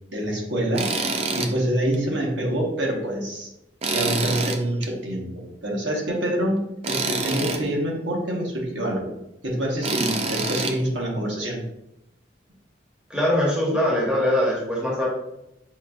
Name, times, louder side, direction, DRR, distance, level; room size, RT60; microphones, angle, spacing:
voice 1, 0.1-0.9 1.3-3.5 3.9-9.1 9.4-11.6, right 1 dB, 70° right, -2 dB, 1.0 m, -26 dB
Tools, 0.8-1.5 1.9-2.0 3.8-4.9 6.8-7.6 9.8-10.7, right 3 dB, 35° right, 0.3 m, -26 dB
voice 2, 13.1-15.1, left 1 dB, 5° right, -4 dB, 0.8 m, -22 dB
5.7 x 2.5 x 2.3 m, 0.86 s
head